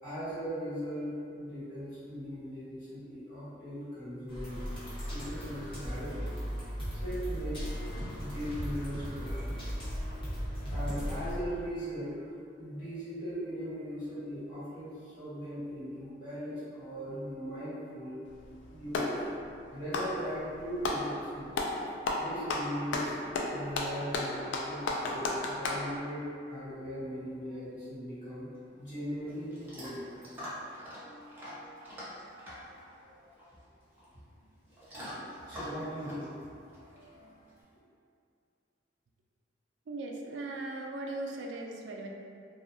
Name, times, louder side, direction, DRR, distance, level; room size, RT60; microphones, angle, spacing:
voice 1, 0.0-4.6 5.1-6.4 6.9-7.8 8.2-9.7 10.7-12.3 12.6-18.2 18.7-19.2 19.7-21.8 22.1-23.1 23.5-28.4 28.8-30.3 32.2-32.5 33.0-33.4 35.4-36.5 36.7-37.0, equal, 45° left, -14 dB, 1.2 m, -39 dB
sound 1, 4.3-11.3, equal, 30° left, 0.8 m, -37 dB
Clapping, 18.3-19.2 19.8-21.1 21.5-21.8 22.1-25.9, left 2 dB, 75° left, 0.3 m, -32 dB
Chewing mastication / Dog, 28.5-37.6, equal, 10° right, 0.6 m, -46 dB
voice 2, 39.9-42.1, right 2 dB, 70° right, 1 dB, 0.3 m, -38 dB
2.7 x 2.3 x 2.5 m, 2.5 s
head